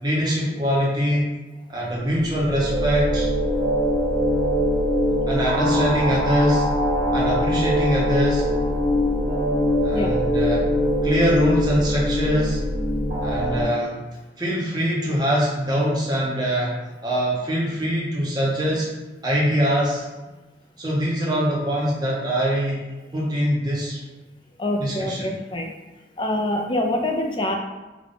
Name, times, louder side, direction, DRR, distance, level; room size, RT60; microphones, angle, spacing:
voice 1, 0.0-1.3 1.7-3.3 5.3-6.7 7.1-8.5 9.8-10.6 11.0-12.6 13.2-14.0 14.4-16.7 17.0-18.9 19.2-20.1 20.8-22.8 23.1-24.0 24.8-25.4, equal, 25° right, -5 dB, 0.7 m, -23 dB
sound 1, 2.0-13.6, equal, 80° right, 1.4 m, -22 dB
voice 2, 24.6-25.7 26.2-27.6, left 1 dB, 25° left, 2 dB, 0.4 m, -25 dB
3.7 x 2.3 x 3.7 m, 1.1 s
head